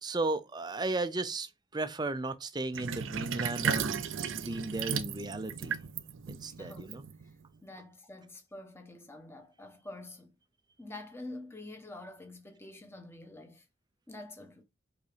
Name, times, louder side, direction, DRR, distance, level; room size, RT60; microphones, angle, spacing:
voice 1, 0.0-4.1 4.3-5.8 6.3-7.0, right 2 dB, 20° right, 0.6 m, -35 dB
Sink (filling or washing), 2.7-7.5, right 6 dB, 70° right, 0.5 m, -35 dB
voice 2, 6.4-6.9 7.2-7.3 7.6-10.4 10.8-13.6 14.1-14.6, left 2 dB, 10° left, 1.2 m, -47 dB
5.3 x 3.9 x 5.0 m
head